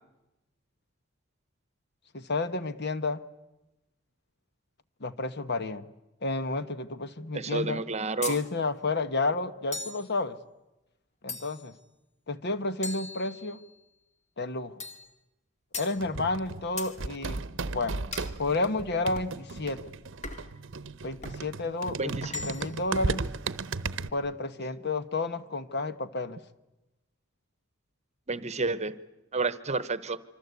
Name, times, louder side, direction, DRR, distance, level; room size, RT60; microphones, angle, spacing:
voice 1, 2.1-3.2 5.0-5.9 6.2-7.8 8.3-10.4 11.2-11.7 12.3-13.6 14.4-14.8 15.8-17.4 17.7-18.0 18.4-19.8 21.0-23.3 24.1-26.4, left 3 dB, 55° left, 12 dB, 1.2 m, -31 dB
voice 2, 7.3-8.4 22.0-22.3 28.3-29.0 29.3-30.2, right 3 dB, 35° right, 16 dB, 1.0 m, -30 dB
sound 1, 8.2-8.5 9.7-10.1 11.3-11.7 12.8-13.7 14.8-15.1 15.7-16.0 16.8-17.0 18.1-18.4 19.1-19.4 20.2-20.6 21.2-21.4 22.2-22.8, left 3 dB, 35° left, 2.2 m, -38 dB
sound 2, 16.0-24.1, right 3 dB, 65° right, 0.9 m, -35 dB
26.0 x 25.0 x 8.3 m, 0.99 s
head